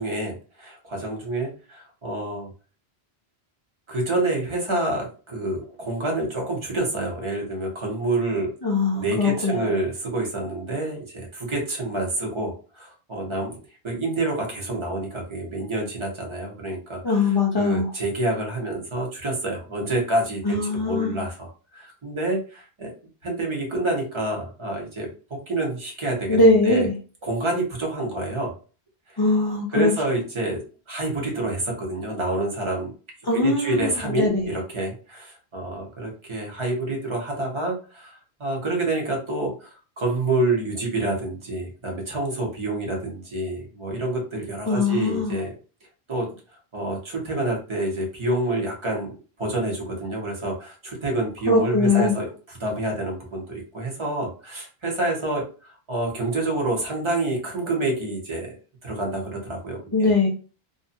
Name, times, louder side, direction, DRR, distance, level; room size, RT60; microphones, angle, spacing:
voice 1, 0.0-2.5 3.9-8.5 8.9-13.5 13.8-17.3 17.6-22.9 23.2-26.9 27.2-28.5 29.1-29.2 29.7-30.6 30.9-32.9 33.3-45.5 46.1-46.3 46.7-49.1 49.4-58.5 58.8-60.1, right 2 dB, 30° right, 0 dB, 0.8 m, -28 dB
voice 2, 8.6-9.7 17.0-17.9 20.4-21.2 26.3-27.0 29.2-29.9 33.2-34.5 44.7-45.4 51.5-52.2 59.9-60.3, left 2 dB, 40° left, -2 dB, 0.3 m, -21 dB
2.6 x 2.3 x 2.6 m, 0.36 s
omnidirectional pair, 1.1 m